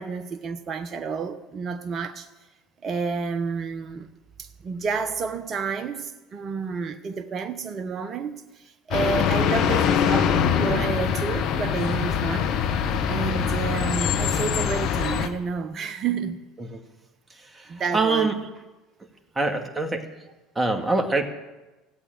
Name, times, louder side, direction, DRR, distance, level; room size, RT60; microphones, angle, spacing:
voice 1, 0.0-2.3 2.8-4.1 4.4-12.5 13.1-16.4 17.7-18.3, right 5 dB, 40° right, 1.1 m, -30 dB
sound 1, 8.9-15.3, left 7 dB, 60° left, 1.2 m, -23 dB
voice 2, 17.5-18.3 19.4-20.0 20.6-21.3, right 3 dB, 15° right, 2.1 m, -24 dB
16.0 x 8.4 x 8.8 m
hypercardioid pair, 75°, 0 cm